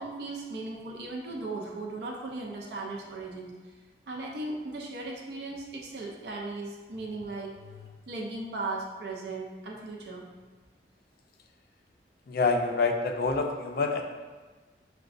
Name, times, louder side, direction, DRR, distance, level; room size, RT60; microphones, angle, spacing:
voice 1, 0.0-7.5 8.1-10.3, right 2 dB, 65° right, -1 dB, 0.5 m, -37 dB
voice 2, 12.3-14.0, left 4 dB, 55° left, 4 dB, 0.4 m, -26 dB
6.5 x 2.2 x 2.5 m, 1.3 s
head